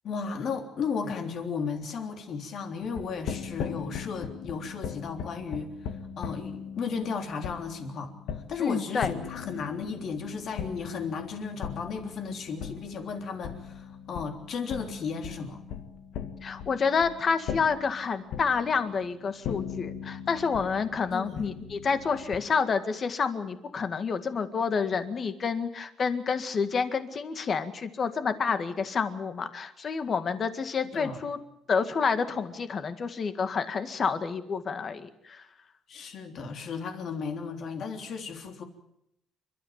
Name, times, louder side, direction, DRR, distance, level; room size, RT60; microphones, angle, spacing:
voice 1, 0.0-5.7 6.2-8.1 8.5-15.6 21.1-21.5 30.9-31.2 35.9-38.6, left 5 dB, 50° left, 5 dB, 3.5 m, -34 dB
sound 1, 2.8-22.4, left 7 dB, 85° left, 2.0 m, -39 dB
voice 2, 8.6-9.1 16.4-31.4 31.7-35.4, left 5 dB, 35° left, 10 dB, 1.9 m, -29 dB
29.0 x 13.0 x 8.9 m, 0.82 s
cardioid pair, 145°, 0 cm